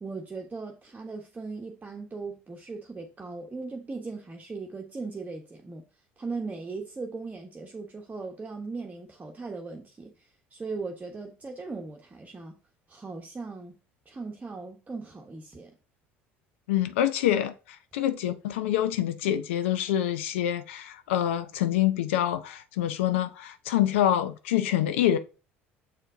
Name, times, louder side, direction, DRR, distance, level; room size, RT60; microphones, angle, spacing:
voice 1, 0.0-5.8 6.2-12.6 12.9-13.7 14.1-15.8, right 3 dB, 25° right, 1.2 m, -38 dB
voice 2, 16.7-25.2, left 11 dB, 75° left, 0.6 m, -26 dB
7.5 x 4.4 x 3.8 m
hypercardioid pair, 65°, 7 cm